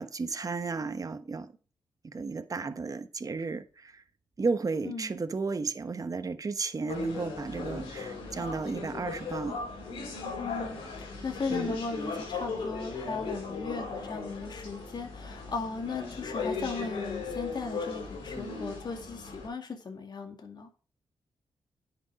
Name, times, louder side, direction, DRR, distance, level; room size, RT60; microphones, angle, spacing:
voice 1, 0.0-1.5 2.0-4.0 4.4-9.6 11.5-11.8, right 4 dB, 40° right, 1.1 m, -33 dB
sound 1, 6.9-19.5, left 4 dB, 85° left, 2.9 m, -37 dB
voice 2, 10.4-20.7, left 4 dB, 50° left, 2.2 m, -37 dB
10.0 x 6.2 x 5.1 m
cardioid pair, 55°, 9 cm